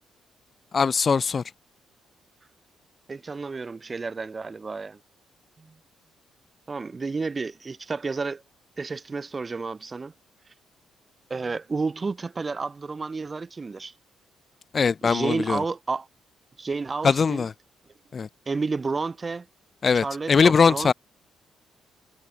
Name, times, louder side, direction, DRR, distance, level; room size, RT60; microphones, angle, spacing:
voice 1, 0.7-1.4 14.7-15.6 17.0-17.5 18.1-18.3 19.8-20.9, left 5 dB, 40° left, 1.8 m, -21 dB
voice 2, 3.1-5.0 5.6-5.8 6.7-8.4 8.8-10.1 11.3-13.9 15.0-16.1 16.6-17.5 18.5-19.5 19.9-20.9, right 4 dB, 30° right, 2.2 m, -31 dB
cardioid pair, 90°, 0 cm